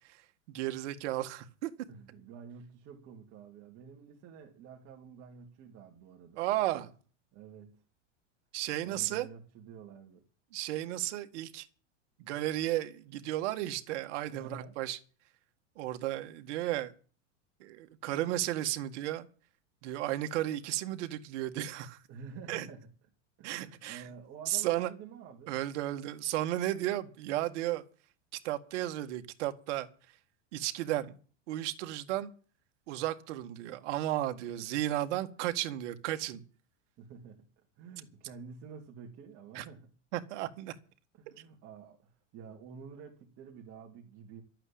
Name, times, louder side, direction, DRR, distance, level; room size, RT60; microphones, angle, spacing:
voice 1, 0.5-1.7 6.4-6.9 8.5-9.3 10.5-11.7 12.2-15.0 15.8-16.9 17.6-19.3 19.8-22.0 22.5-22.7 23.4-24.0 24.5-24.9 25.5-27.8 28.4-29.9 30.5-31.1 31.5-32.3 32.9-36.4 39.6-39.7 40.1-40.7, right 14 dB, 70° right, 1.9 m, -34 dB
voice 2, 1.9-6.4 7.3-7.8 8.8-10.2 14.3-14.8 22.1-22.9 23.4-25.6 26.7-26.8 34.4-34.7 37.0-39.9 41.1-44.4, right 6 dB, 40° right, 2.9 m, -49 dB
12.5 x 8.9 x 8.7 m
supercardioid pair, 140°, 37 cm